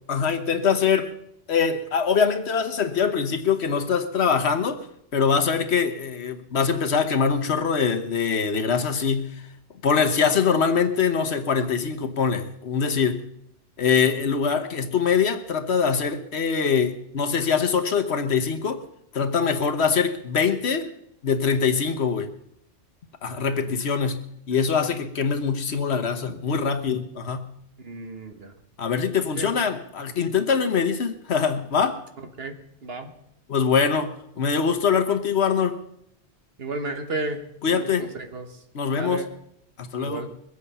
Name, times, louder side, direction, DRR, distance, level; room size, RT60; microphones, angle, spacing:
voice 1, 0.1-1.1 1.5-4.9 5.1-9.3 9.8-13.2 13.8-18.8 19.1-20.9 21.2-22.3 23.2-27.5 28.8-32.0 33.5-35.8 37.6-38.1 38.7-39.2 39.8-40.3, left 6 dB, 75° left, 1.4 m, -23 dB
voice 2, 23.3-23.8 27.8-28.5 29.4-29.5 32.4-33.1 36.6-38.6 38.9-39.3 40.0-40.3, right 2 dB, 65° right, 1.5 m, -34 dB
22.0 x 8.3 x 5.5 m
omnidirectional pair, 1.1 m